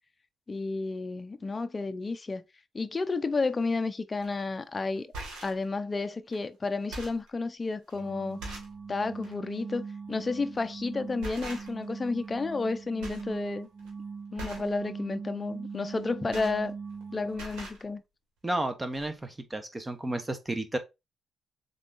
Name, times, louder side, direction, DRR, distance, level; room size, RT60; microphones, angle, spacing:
voice 1, 0.5-2.4 2.7-5.1 5.4-8.4 8.9-13.7 14.3-16.7 17.1-18.0, left 3 dB, 25° left, 0.6 m, -31 dB
sound 1, 4.2-4.4 5.0-5.6 6.3-6.4 6.7-7.3 7.9-8.0 8.4-8.8 9.2-9.4 10.5-10.8 11.2-11.9 12.2-12.7 13.0-13.3 13.6-13.9 14.3-14.7 15.9-17.0 17.3-17.8 18.6-18.7 18.9-19.1, right 2 dB, 85° right, 1.6 m, -42 dB
sound 2, 7.9-17.6, right 5 dB, 50° right, 1.3 m, -41 dB
voice 2, 18.4-20.8, right 1 dB, 15° right, 1.0 m, -32 dB
3.9 x 3.6 x 3.6 m
cardioid pair, 90°, 0 cm